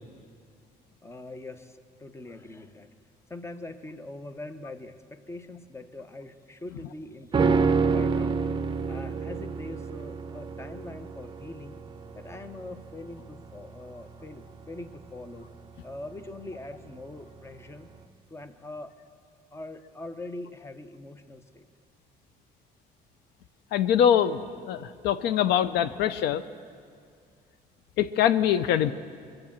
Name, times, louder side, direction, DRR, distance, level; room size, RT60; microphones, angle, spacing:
voice 1, 1.0-2.9 3.3-8.4 8.9-11.8 12.2-15.5 15.8-17.9 18.3-18.9 19.5-21.7, left 2 dB, 15° left, 10 dB, 0.8 m, -42 dB
sound 1, 7.3-16.7 17.0-17.1, right 5 dB, 30° right, 0.6 m, -29 dB
voice 2, 23.7-26.4 28.0-28.9, left 9 dB, 80° left, 13 dB, 0.5 m, -23 dB
22.5 x 7.8 x 7.3 m, 2.2 s
cardioid pair, 110°, 17 cm